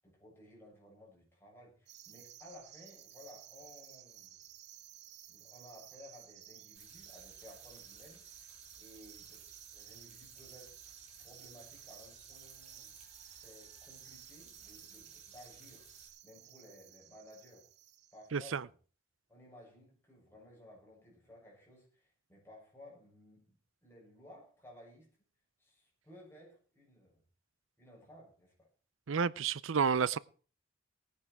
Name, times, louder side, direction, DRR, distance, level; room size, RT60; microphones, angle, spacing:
voice 1, 0.0-4.4 5.3-8.5 8.8-10.8 11.2-12.9 13.3-15.9 16.2-17.6 18.1-18.7 19.3-25.1 25.6-27.2 27.8-28.7, left 1 dB, 15° left, 7.6 m, -57 dB
sound 1, 1.9-18.3, right 12 dB, 60° right, 1.0 m, -55 dB
sound 2, 6.8-16.1, right 4 dB, 35° right, 5.2 m, -58 dB
voice 2, 18.3-18.6 29.1-30.2, right 6 dB, 75° right, 0.5 m, -30 dB
18.5 x 9.7 x 4.7 m
head